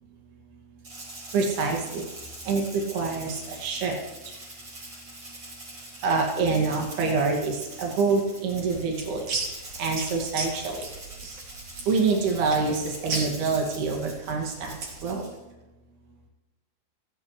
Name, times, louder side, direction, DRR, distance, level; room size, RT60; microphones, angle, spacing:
Rattle (instrument), 0.8-15.4, right 2 dB, 35° right, 7.5 m, -44 dB
voice 1, 1.3-2.1 2.5-4.0 6.0-9.2 9.5-10.8 11.9-14.8 15.0-15.2, right 4 dB, 90° right, 0 dB, 4.3 m, -26 dB
sound 1, 8.5-15.0, right 3 dB, 50° right, 4.3 m, -35 dB
29.0 x 12.5 x 3.3 m, 1.1 s
omnidirectional pair, 4.4 m